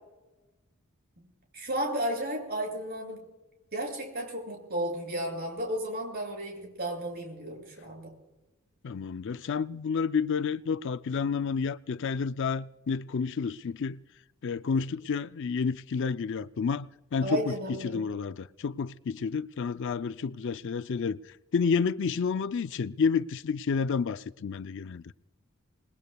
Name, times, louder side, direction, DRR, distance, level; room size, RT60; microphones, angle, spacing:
voice 1, 1.5-3.2 3.7-8.1 17.2-18.0, right 1 dB, 50° right, 6.8 m, -33 dB
voice 2, 8.8-14.0 14.4-21.2 21.5-25.1, left 5 dB, 60° left, 0.5 m, -30 dB
27.5 x 20.5 x 2.3 m
head